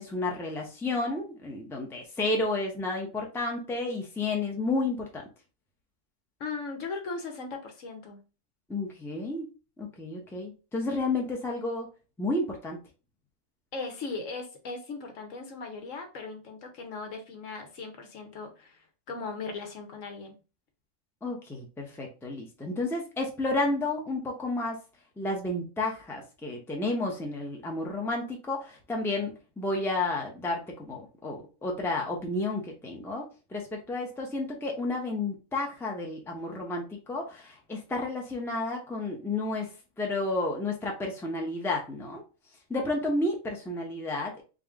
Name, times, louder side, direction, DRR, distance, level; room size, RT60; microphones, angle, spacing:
voice 1, 0.0-5.2 8.7-9.5 9.8-11.9 12.2-12.8 21.2-24.8 25.2-33.2 33.5-39.7 40.0-42.2 42.7-44.4, left 2 dB, ahead, 0.7 m, -31 dB
voice 2, 6.4-8.2 13.7-20.4, left 4 dB, 70° left, 1.2 m, -38 dB
3.8 x 2.5 x 3.5 m
omnidirectional pair, 1.4 m